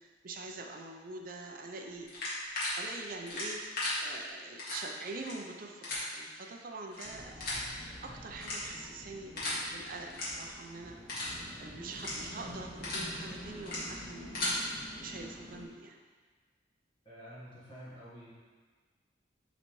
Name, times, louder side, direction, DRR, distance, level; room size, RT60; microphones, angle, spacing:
voice 1, 0.0-2.1 2.8-7.3 8.0-11.0 11.6-14.6 15.0-16.0, right 3 dB, 50° right, 2 dB, 0.6 m, -44 dB
sound 1, 2.1-2.7 3.3-3.9 4.6-4.8 5.2-5.3 5.8-6.0 6.9-7.0 7.4-7.6 8.4-8.8 9.3-9.6 10.1-10.2 10.6-10.7 11.1-11.3 11.9-12.1 12.6-13.0 13.6-13.8 14.2-14.5, left 2 dB, 50° left, 2.0 m, -36 dB
sound 2, 7.0-15.6, equal, 10° right, 1.6 m, -48 dB
voice 2, 17.0-18.3, equal, 25° left, -10 dB, 1.5 m, -49 dB
9.6 x 4.0 x 3.1 m, 1.5 s
head